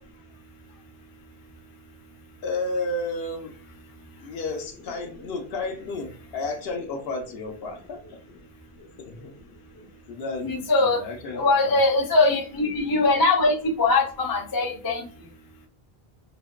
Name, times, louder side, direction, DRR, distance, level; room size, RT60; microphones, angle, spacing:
voice 1, 2.4-3.5 4.2-8.2 9.0-9.3 10.1-11.7, left 2 dB, 75° left, 3 dB, 0.8 m, -32 dB
voice 2, 10.4-11.0 11.3-15.1, left 3 dB, 35° left, 1 dB, 0.4 m, -21 dB
2.6 x 2.1 x 2.2 m, 0.40 s
omnidirectional pair, 1.0 m